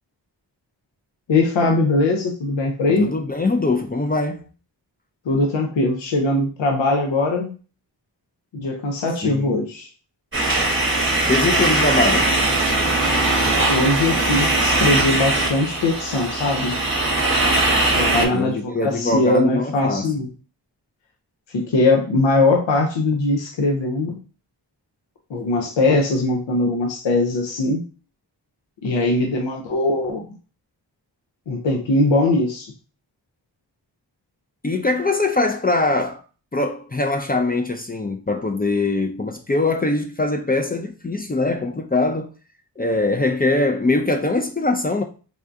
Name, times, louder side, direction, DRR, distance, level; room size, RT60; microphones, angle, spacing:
voice 1, 1.3-3.1 5.3-7.5 8.5-9.9 13.7-16.8 17.9-20.3 21.5-24.2 25.3-27.8 28.8-30.2 31.5-32.7, left 2 dB, 80° left, 0.7 m, -20 dB
voice 2, 3.0-4.5 9.2-9.6 11.3-12.4 18.3-20.1 34.6-36.2 36.5-42.3 42.8-45.0, left 2 dB, 20° left, 0.4 m, -22 dB
sound 1, 10.3-18.2, right 2 dB, 30° right, 0.9 m, -20 dB
3.6 x 2.2 x 2.5 m
cardioid pair, 40°, 44 cm